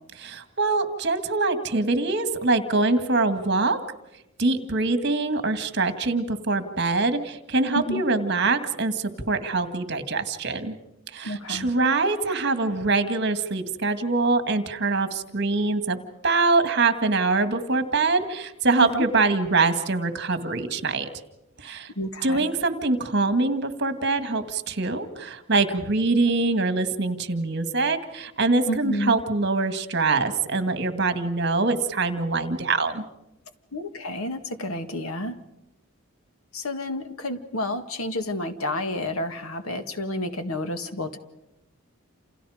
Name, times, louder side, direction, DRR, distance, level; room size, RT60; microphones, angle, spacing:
voice 1, 0.2-3.8 4.4-10.7 11.1-16.0 16.2-21.1 21.6-21.9 22.2-33.0, right 3 dB, 50° right, 9 dB, 2.0 m, -24 dB
voice 2, 11.2-11.7 18.8-19.0 22.0-22.5 28.7-29.2 33.7-35.4 36.5-41.2, left 1 dB, 85° left, 8 dB, 2.0 m, -30 dB
29.0 x 28.5 x 5.1 m, 0.91 s
head